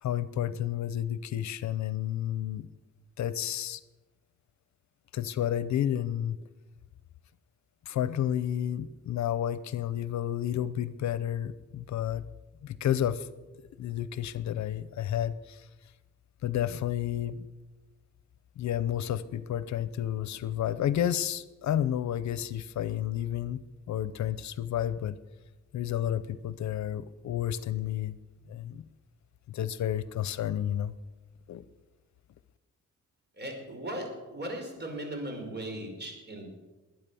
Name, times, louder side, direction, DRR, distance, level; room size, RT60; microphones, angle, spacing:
voice 1, 0.0-2.7 3.2-3.8 5.1-6.4 7.9-12.3 12.6-13.3 13.8-15.7 16.4-17.5 18.6-25.2 25.7-28.2 28.5-28.8 29.5-30.9 31.5-31.6, left 11 dB, 70° left, 16 dB, 0.7 m, -31 dB
voice 2, 33.3-36.5, right 1 dB, 35° right, 3 dB, 5.0 m, -38 dB
21.0 x 9.6 x 7.0 m, 1.2 s
cardioid pair, 110°, 29 cm